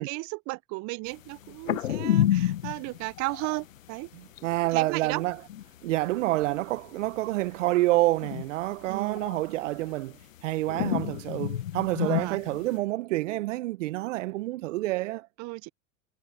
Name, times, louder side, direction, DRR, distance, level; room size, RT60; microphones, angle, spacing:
voice 1, 0.0-4.1 4.7-5.2 8.9-9.3 12.0-12.4 15.4-15.7, right 24 dB, 45° right, 0.8 m, -35 dB
sound 1, 1.4-3.8 4.1-4.2 4.4-4.7 5.1-5.6 5.9-7.2 7.6-8.6 8.9-10.4 10.7-12.7, left 12 dB, 85° left, 1.0 m, -29 dB
voice 2, 4.1-5.4 5.8-15.3, right 18 dB, 70° right, 1.1 m, -28 dB
hypercardioid pair, 90°, 38 cm